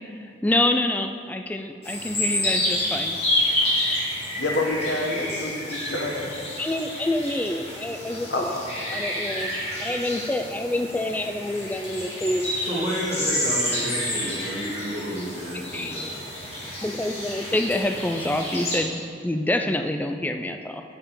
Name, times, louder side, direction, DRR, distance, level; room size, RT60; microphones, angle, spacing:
voice 1, 0.2-3.2 6.6-8.5 8.9-12.8 15.7-16.0 16.8-20.8, left 1 dB, 10° left, 6 dB, 0.3 m, -27 dB
sound 1, 1.8-18.8, left 1 dB, 35° left, 2.0 m, -29 dB
voice 2, 4.3-6.3 8.3-8.6, left 2 dB, 65° left, 1 dB, 1.1 m, -27 dB
voice 3, 12.6-16.3, equal, 35° right, -12 dB, 1.9 m, -31 dB
9.3 x 6.7 x 3.8 m, 2.3 s
head